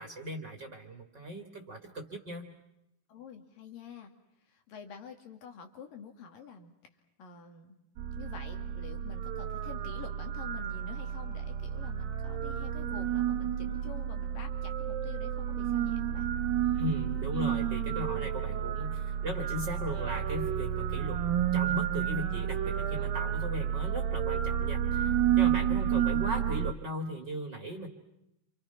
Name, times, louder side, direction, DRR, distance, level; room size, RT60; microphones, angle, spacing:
voice 1, 0.0-2.5 16.7-21.2 21.5-27.9, equal, 35° right, 4 dB, 2.4 m, -38 dB
voice 2, 3.1-4.1 4.5-6.7 7.2-7.8 8.2-16.3, left 6 dB, 75° left, 5 dB, 4.1 m, -48 dB
sound 1, 8.0-26.7, right 9 dB, 90° right, 2.8 m, -31 dB
28.5 x 28.0 x 5.8 m, 0.85 s
omnidirectional pair, 4.0 m